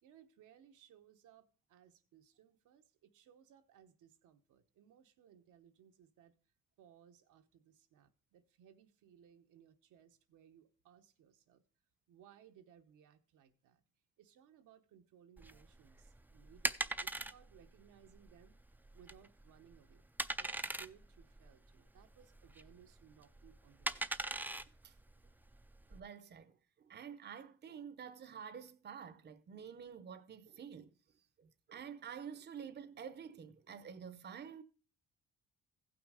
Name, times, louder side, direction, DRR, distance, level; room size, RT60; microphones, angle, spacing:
voice 1, 0.0-6.4 6.8-11.6 12.1-13.8 14.2-18.6 18.9-20.1 20.4-24.1, right 9 dB, 85° right, 1.0 m, -63 dB
sound 1, 15.4-26.0, right 2 dB, 5° right, 0.4 m, -41 dB
voice 2, 25.9-26.5 26.8-30.9 31.4-34.6, right 7 dB, 35° right, 0.7 m, -49 dB
15.5 x 6.0 x 4.9 m
cardioid pair, 90°, 30 cm